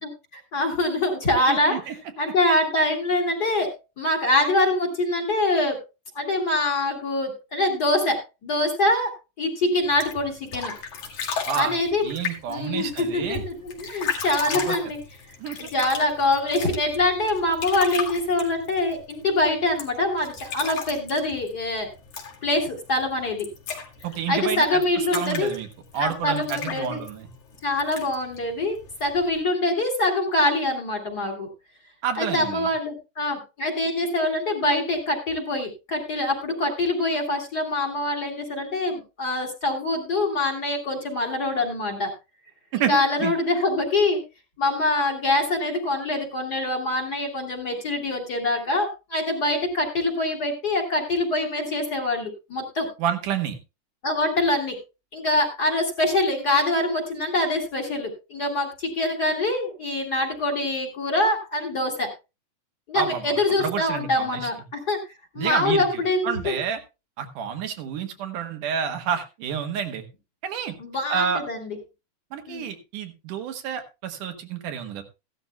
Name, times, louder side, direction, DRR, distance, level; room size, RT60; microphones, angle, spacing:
voice 1, 0.0-1.8 2.2-5.8 6.1-9.1 9.4-10.7 11.5-12.1 12.5-15.0 15.6-21.9 22.4-23.5 24.3-25.5 26.0-27.0 27.6-31.5 32.2-42.1 42.9-44.2 44.6-52.9 54.0-54.8 55.1-62.1 62.9-65.0 65.3-66.5 70.8-71.8 72.5-72.7, left 2 dB, 35° left, 1 dB, 2.3 m, -24 dB
voice 2, 1.5-1.9 11.5-13.4 14.5-14.8 15.4-15.6 24.0-24.8 25.1-25.7 25.9-27.3 32.0-32.7 42.7-43.3 53.0-53.6 62.9-64.5 65.4-66.8 67.2-70.0 70.4-70.7 71.1-71.4 72.3-75.0, right 8 dB, 90° right, 6 dB, 2.9 m, -29 dB
sound 1, 9.8-29.4, left 6 dB, 70° left, 3.6 m, -36 dB
16.0 x 12.0 x 2.2 m, 0.27 s
omnidirectional pair, 3.5 m